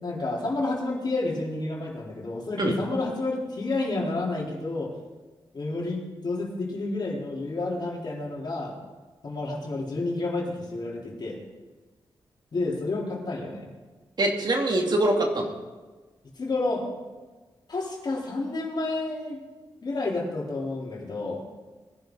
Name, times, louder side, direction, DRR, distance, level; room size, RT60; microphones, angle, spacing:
voice 1, 0.0-4.9 5.5-8.8 9.2-11.4 12.5-13.7 16.4-16.9 17.7-19.4 19.8-21.4, left 2 dB, 55° left, -3 dB, 4.0 m, -30 dB
voice 2, 14.2-15.5, right 1 dB, 55° right, 2 dB, 2.3 m, -23 dB
21.5 x 11.0 x 4.0 m, 1.3 s
cardioid pair, 65°, 9 cm